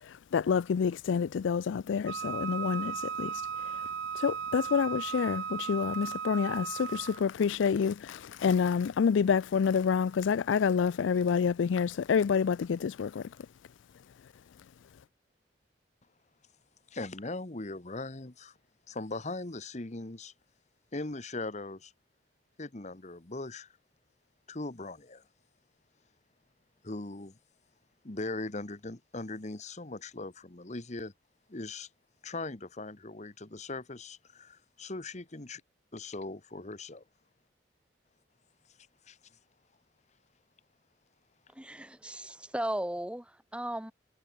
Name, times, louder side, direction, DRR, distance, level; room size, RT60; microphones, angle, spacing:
voice 1, 0.3-3.3 4.2-13.2, left 6 dB, 80° left, 0.4 m, -28 dB
Wind instrument woodwind instrument, 2.1-7.3, right 7 dB, 65° right, 0.5 m, -36 dB
voice 2, 16.9-18.6 18.9-20.3 20.9-21.9 22.6-23.7 24.5-25.2 26.8-27.4 28.0-31.1 31.5-31.9 32.2-35.6 35.9-37.0 39.1-39.2, left 2 dB, 40° left, 1.3 m, -39 dB
voice 3, 41.6-43.9, right 1 dB, 5° right, 0.9 m, -36 dB
head